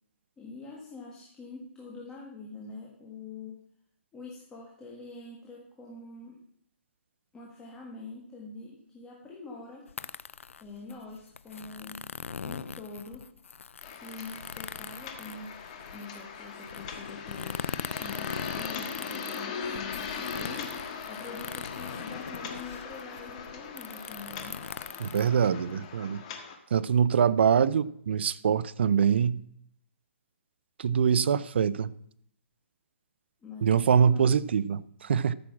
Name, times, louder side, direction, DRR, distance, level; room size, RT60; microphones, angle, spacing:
voice 1, 0.4-3.6 4.1-6.4 7.3-9.9 10.6-12.0 12.4-13.2 14.0-15.6 15.9-17.7 18.0-24.6 33.4-34.4, left 3 dB, 10° left, 1.5 m, -45 dB
sound 1, 9.9-26.0, left 6 dB, 90° left, 0.6 m, -41 dB
sound 2, 13.8-26.6, left 6 dB, 30° left, 1.6 m, -40 dB
voice 2, 25.0-26.2 26.7-29.4 30.8-31.9 33.6-35.3, right 7 dB, 55° right, 0.5 m, -24 dB
13.5 x 6.1 x 7.2 m
hypercardioid pair, 170°, 7 cm